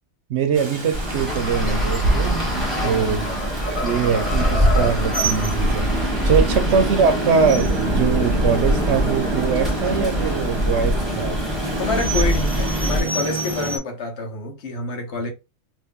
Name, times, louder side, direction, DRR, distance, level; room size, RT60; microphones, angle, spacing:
voice 1, 0.3-2.4 2.8-3.3 3.8-5.9 6.2-11.4, right 6 dB, 65° right, 0.9 m, -22 dB
Rain, 0.5-13.8, right 1 dB, 35° right, 0.4 m, -28 dB
Traffic noise roadway noise, 0.9-13.0, equal, ahead, 1.1 m, -23 dB
sound 1, 2.5-2.9 3.3-5.4, left 1 dB, 35° left, 1.3 m, -29 dB
voice 2, 2.8-3.2 6.4-6.6 11.8-15.3, left 3 dB, 65° left, 1.2 m, -28 dB
2.7 x 2.5 x 3.5 m
omnidirectional pair, 1.3 m